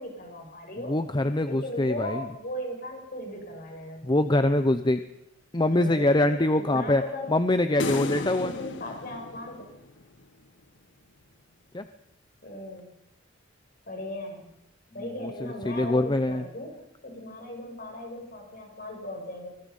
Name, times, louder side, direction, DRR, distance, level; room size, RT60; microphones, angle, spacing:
voice 1, 0.0-1.0 1.5-4.2 5.7-7.3 7.7-9.6 12.4-12.9 13.9-14.5 14.9-16.7 17.0-19.5, left 1 dB, 50° left, 2 dB, 7.0 m, -38 dB
voice 2, 0.9-2.3 4.0-5.0 5.5-7.0 7.3-8.5 11.7-11.9 15.2-16.4, left 1 dB, 25° left, 10 dB, 0.8 m, -24 dB
sound 1, 7.8-10.2, left 3 dB, 65° left, 1.5 m, -34 dB
24.5 x 21.0 x 5.6 m, 0.85 s
head